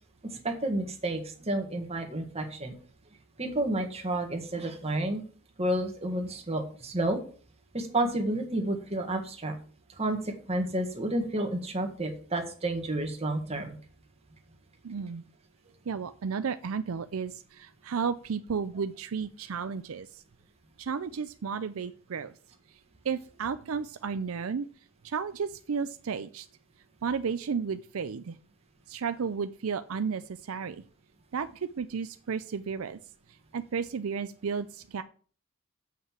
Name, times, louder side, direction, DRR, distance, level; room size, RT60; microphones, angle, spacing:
voice 1, 0.2-2.7 3.4-5.2 5.6-7.2 7.7-9.5 9.9-13.8 19.6-19.7, right 1 dB, 30° right, 3 dB, 1.7 m, -30 dB
voice 2, 14.8-15.2 15.9-20.2 20.8-22.4 22.7-24.7 25.0-26.5 27.0-28.4 28.9-30.8 31.3-33.0 33.3-35.0, right 6 dB, 70° right, 11 dB, 0.5 m, -33 dB
7.7 x 5.5 x 7.5 m, 0.43 s
head